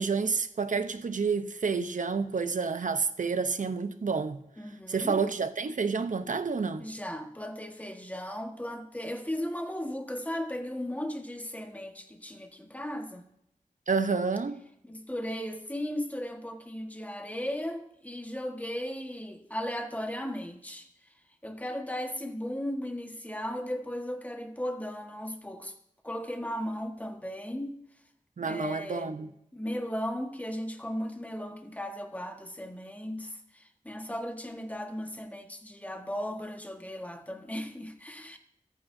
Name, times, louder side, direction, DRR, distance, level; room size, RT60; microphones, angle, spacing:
voice 1, 0.0-4.4 4.9-6.8 13.9-14.6 28.4-29.3, right 5 dB, 70° right, 0.8 m, -29 dB
voice 2, 4.6-5.2 6.8-13.2 14.8-20.9 21.4-25.7 26.0-27.8 28.4-29.1 29.5-38.4, equal, 10° left, 1.5 m, -36 dB
24.0 x 9.3 x 2.7 m
wide cardioid pair, 90°, 14 cm